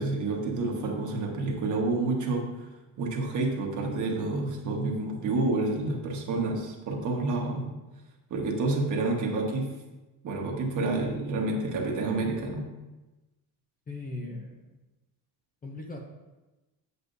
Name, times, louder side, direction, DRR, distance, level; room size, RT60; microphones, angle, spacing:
voice 1, 0.0-2.5 3.0-7.7 8.3-9.7 10.2-12.6, right 2 dB, 45° right, 0 dB, 1.4 m, -29 dB
voice 2, 13.9-14.6 15.6-16.0, left 2 dB, 20° left, 1 dB, 0.7 m, -38 dB
8.1 x 7.6 x 2.6 m, 1.1 s
cardioid pair, 160°, 40 cm